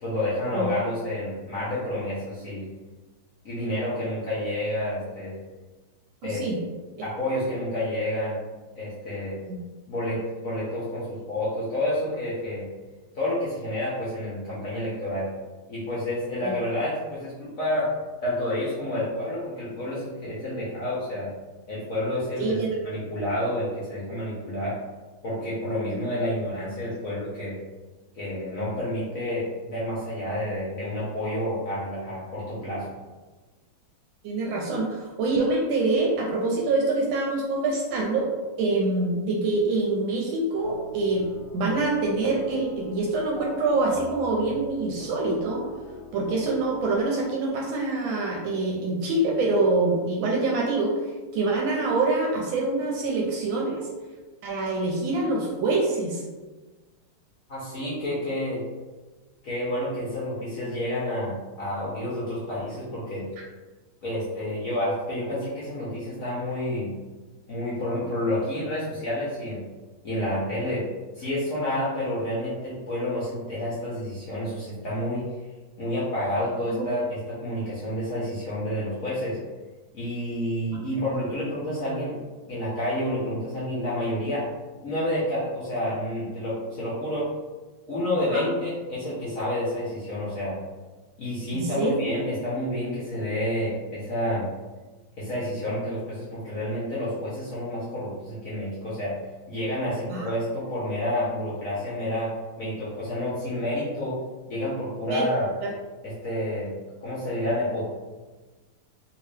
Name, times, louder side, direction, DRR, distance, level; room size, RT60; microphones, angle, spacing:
voice 1, 0.0-2.7 3.4-5.4 6.2-6.4 7.0-8.4 8.7-9.4 9.9-12.7 13.1-15.3 15.7-17.9 18.2-21.3 21.7-22.6 22.8-24.7 25.2-27.5 28.1-32.9 57.5-58.6 59.4-63.2 64.0-66.9 67.5-69.6 70.0-70.8 71.1-75.2 75.8-79.4 79.9-82.2 82.5-84.4 84.8-87.3 87.9-90.6 91.2-94.5 95.2-99.1 99.5-102.3 102.6-104.2 104.5-105.5 106.0-106.7 107.0-107.9, left 1 dB, 55° left, -8 dB, 0.9 m, -29 dB
voice 2, 6.2-6.6 9.5-9.6 16.4-16.5 22.4-22.7 34.2-38.3 38.6-41.2 41.5-45.6 46.1-50.9 51.3-53.9 54.4-56.2 76.7-76.8 88.3-88.5 91.5-92.0 100.1-100.3 105.1-105.3 105.6-105.7, right 2 dB, 75° right, -2 dB, 1.3 m, -25 dB
sound 1, 40.6-47.1, left 3 dB, 85° left, 1.4 m, -42 dB
3.2 x 2.9 x 3.2 m, 1.2 s
omnidirectional pair, 2.3 m